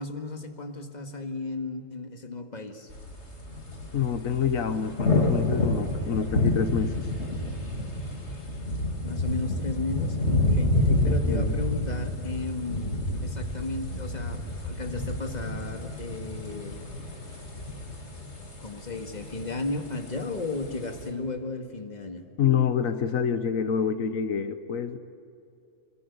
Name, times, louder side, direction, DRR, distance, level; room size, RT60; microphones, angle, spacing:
voice 1, 0.0-2.9 9.0-16.9 18.6-22.3, left 3 dB, 35° left, 5 dB, 2.0 m, -34 dB
sound 1, 2.9-21.1, left 1 dB, 55° left, 3.1 m, -29 dB
voice 2, 3.9-7.1 11.0-11.6 22.4-25.0, left 7 dB, 80° left, 10 dB, 1.4 m, -27 dB
26.0 x 22.5 x 8.3 m, 2.7 s
omnidirectional pair, 1.4 m